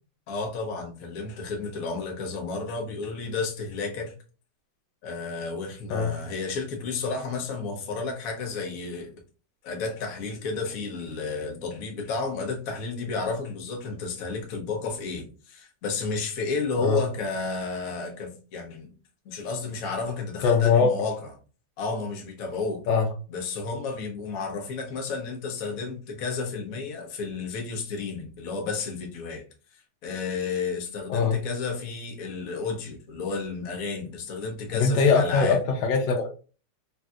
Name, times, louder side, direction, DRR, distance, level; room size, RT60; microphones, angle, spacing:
voice 1, 0.3-4.1 5.0-9.1 9.6-18.9 19.2-21.3 21.8-22.9 23.3-29.4 29.7-35.6, left 4 dB, 60° left, 1 dB, 1.0 m, -32 dB
voice 2, 20.4-20.9 22.9-23.1 31.1-31.4 34.7-36.3, left 5 dB, 75° left, 1 dB, 1.3 m, -21 dB
3.2 x 2.6 x 2.3 m, 0.36 s
omnidirectional pair, 2.1 m